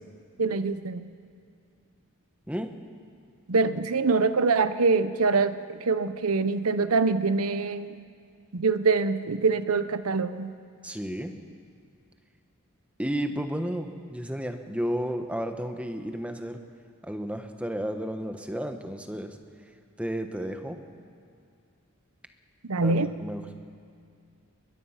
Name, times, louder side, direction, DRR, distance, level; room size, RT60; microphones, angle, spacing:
voice 1, 0.4-1.1 3.5-8.0 8.5-10.5 22.7-23.2, right 4 dB, 80° right, 12 dB, 0.9 m, -24 dB
voice 2, 10.8-11.3 13.0-16.6 17.0-19.4 20.0-20.8 22.8-23.5, equal, 5° right, 6 dB, 1.1 m, -32 dB
22.0 x 21.0 x 5.8 m, 2.4 s
head